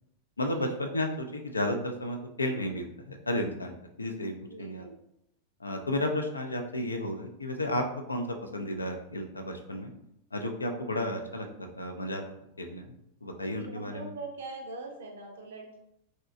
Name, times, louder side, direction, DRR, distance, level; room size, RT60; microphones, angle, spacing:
voice 1, 0.4-4.9 5.6-9.9 10.3-12.2 12.6-12.9 13.2-14.1, left 1 dB, 80° left, 4 dB, 0.3 m, -33 dB
voice 2, 4.5-4.9 10.6-10.7 13.4-15.8, right 3 dB, 60° right, 1 dB, 0.5 m, -42 dB
2.7 x 2.1 x 2.4 m, 0.79 s
figure-of-eight pair, 90°, 0 cm